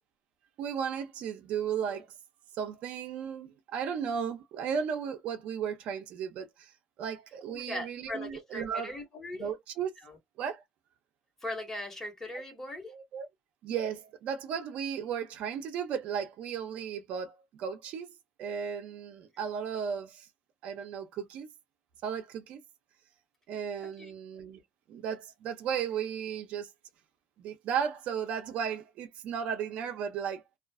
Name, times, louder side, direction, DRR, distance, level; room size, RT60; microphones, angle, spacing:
voice 1, 0.6-2.1 2.6-6.7 7.0-8.9 9.4-9.9 10.4-10.6 12.9-13.3 13.6-18.1 18.4-20.3 20.6-21.5 22.0-22.6 23.5-24.6 24.9-26.7 27.4-30.4, right 7 dB, 65° right, 0.6 m, -35 dB
voice 2, 7.5-9.5 10.0-10.2 11.4-12.9 23.8-24.1, left 1 dB, 20° left, 1.4 m, -40 dB
2.4 x 2.3 x 2.3 m
cardioid pair, 110°, 2 cm